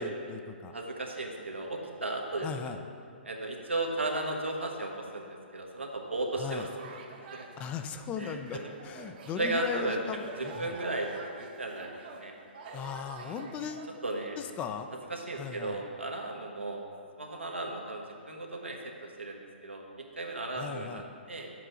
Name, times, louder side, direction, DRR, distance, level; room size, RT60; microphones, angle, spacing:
voice 1, 0.0-0.7 2.4-2.8 6.4-6.7 7.6-10.7 12.7-13.9 14.4-14.9 15.4-15.8 20.6-21.0, left 7 dB, 20° left, 7 dB, 0.5 m, -38 dB
voice 2, 0.7-2.8 3.2-6.7 7.3-7.5 8.2-8.7 9.4-10.0 10.4-12.4 13.2-13.4 14.0-14.4 15.1-16.8 17.2-21.5, right 2 dB, 90° right, 0 dB, 1.2 m, -35 dB
sound 1, 6.7-14.0, right 4 dB, 50° right, 0.9 m, -48 dB
9.7 x 7.6 x 3.8 m, 2.3 s
figure-of-eight pair, 125°, 6 cm